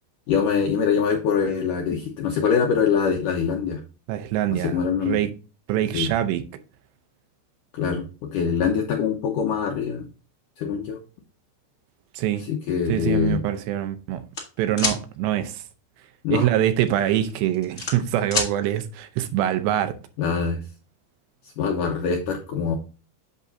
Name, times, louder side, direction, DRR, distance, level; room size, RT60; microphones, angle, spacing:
voice 1, 0.3-3.8 4.5-5.2 5.9-6.1 7.7-10.0 10.6-11.0 12.5-13.4 16.2-16.5 20.2-20.6 21.6-22.8, left 6 dB, 75° left, 1.9 m, -24 dB
voice 2, 4.1-5.3 5.7-6.4 12.1-12.4 12.9-14.2 14.6-15.6 16.3-19.9, right 12 dB, 80° right, 2.8 m, -24 dB
sound 1, 14.3-15.0 16.6-16.9 17.3-18.5, left 3 dB, 45° left, 0.8 m, -26 dB
8.2 x 7.4 x 2.7 m
omnidirectional pair, 5.1 m